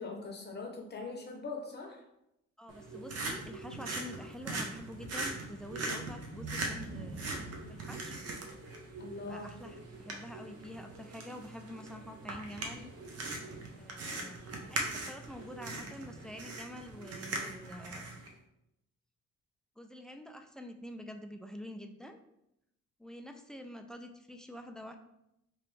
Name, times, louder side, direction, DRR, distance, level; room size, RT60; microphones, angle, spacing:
voice 1, 0.0-2.0 9.0-9.5, left 3 dB, 35° left, 1 dB, 0.8 m, -41 dB
voice 2, 2.6-7.4 7.7-8.2 9.0-12.9 13.8-14.4 14.7-18.1 19.8-22.2 23.0-25.0, equal, ahead, 6 dB, 0.3 m, -47 dB
sound 1, 2.7-18.3, right 2 dB, 55° right, 0.8 m, -41 dB
3.0 x 3.0 x 3.2 m, 0.82 s
cardioid pair, 90°, 30 cm